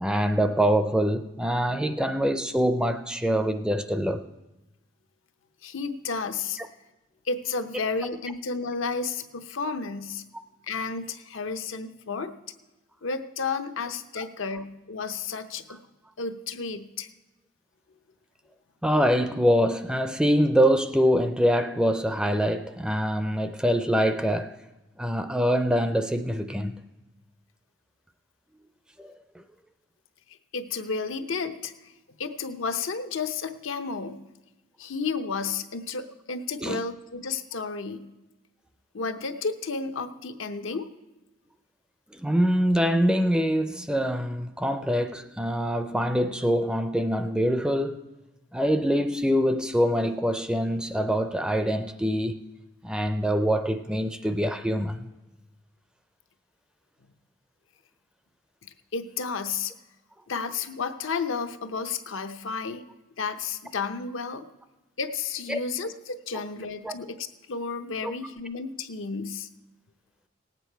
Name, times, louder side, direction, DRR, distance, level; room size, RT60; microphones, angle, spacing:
voice 1, 0.0-4.2 14.2-14.3 18.8-24.5 25.0-26.9 29.0-29.1 36.6-36.8 42.1-48.0 48.5-52.4 52.8-55.1 65.5-65.6 66.8-66.9 68.0-68.1, equal, 5° right, 0.4 m, -24 dB
voice 2, 5.6-6.6 7.3-10.2 10.7-12.3 13.0-15.8 16.2-17.1 30.5-31.9 32.2-34.2 34.8-38.0 38.9-40.9 58.9-59.7 60.3-62.8 63.2-64.5 65.0-69.5, left 4 dB, 85° left, 0.7 m, -32 dB
18.5 x 8.3 x 4.5 m
head